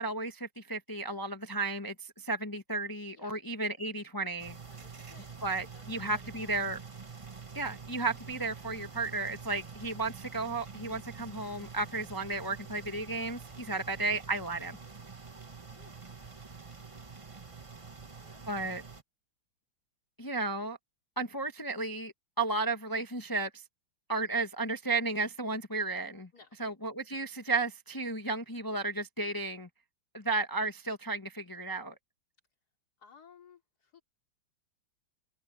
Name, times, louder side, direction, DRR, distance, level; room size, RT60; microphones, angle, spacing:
voice 1, 0.0-4.6 5.4-6.8 7.5-14.8 18.5-18.8 20.2-20.8 21.2-23.6 24.1-26.3 26.6-29.7 30.1-31.9, right 3 dB, 15° left, 0.8 m, -33 dB
sound 1, 4.4-19.0, right 5 dB, 20° right, 0.8 m, -47 dB
voice 2, 4.7-6.8 13.5-13.9 15.8-15.9 18.2-18.4 26.3-26.6 33.0-34.0, left 5 dB, 50° left, 3.7 m, -59 dB
open air
omnidirectional pair, 2.2 m